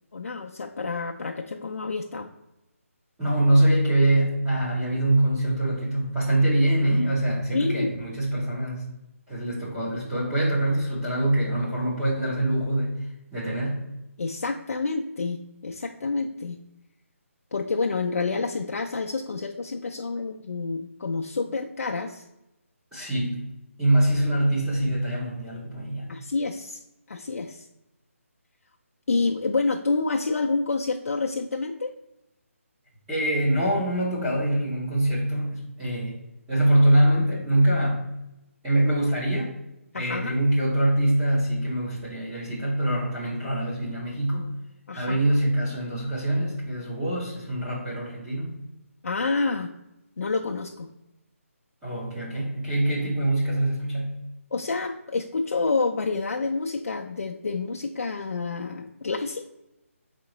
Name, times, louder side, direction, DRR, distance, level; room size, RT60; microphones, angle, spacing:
voice 1, 0.1-2.3 7.5-7.9 14.2-16.6 17.5-22.2 26.1-26.8 27.1-27.7 29.1-31.9 39.9-40.4 44.9-45.2 49.0-49.7 50.2-50.9 54.5-59.5, left 3 dB, 70° left, 1 dB, 0.4 m, -28 dB
voice 2, 3.2-8.8 9.3-13.9 22.9-23.5 23.8-26.1 33.1-36.2 36.5-38.0 38.6-39.6 39.9-44.5 44.9-48.5 51.8-54.2, right 1 dB, 5° right, -8 dB, 0.6 m, -24 dB
4.9 x 3.7 x 2.9 m, 0.91 s
hypercardioid pair, 175°, 8 cm